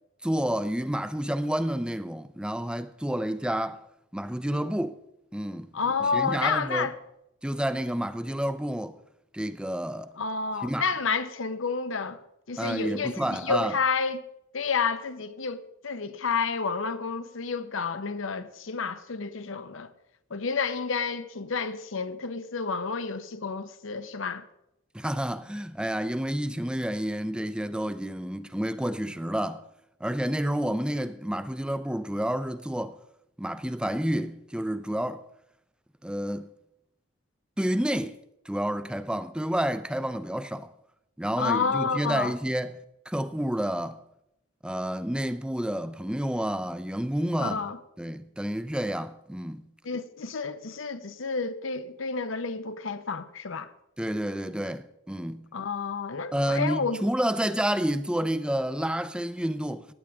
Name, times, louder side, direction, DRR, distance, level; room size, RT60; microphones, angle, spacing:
voice 1, 0.2-3.8 4.1-5.0 5.3-5.7 6.1-6.9 7.4-9.0 9.3-10.1 10.6-10.9 12.6-13.7 24.9-29.6 30.0-33.0 33.4-35.2 36.0-36.5 37.6-38.2 38.5-40.7 41.2-44.0 44.6-47.6 48.0-49.7 54.0-55.5 56.3-59.9, right 1 dB, 5° right, 0.5 m, -29 dB
voice 2, 5.7-6.9 10.2-12.2 12.5-14.2 14.5-19.9 20.3-24.5 41.4-42.3 47.4-47.8 49.8-53.7 55.5-57.0, left 5 dB, 75° left, 0.8 m, -30 dB
16.0 x 10.0 x 3.6 m
head